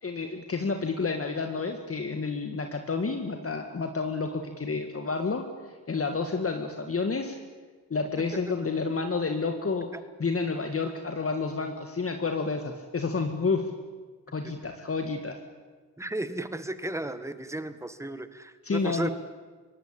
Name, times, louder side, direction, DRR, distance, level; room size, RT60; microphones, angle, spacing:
voice 1, 0.0-7.4 7.9-9.9 10.2-13.7 14.3-15.4 18.6-19.1, left 4 dB, 30° left, 5 dB, 1.8 m, -30 dB
voice 2, 16.0-19.1, right 1 dB, 5° right, 12 dB, 1.5 m, -34 dB
23.0 x 18.0 x 8.7 m, 1.4 s
cardioid pair, 80°, 42 cm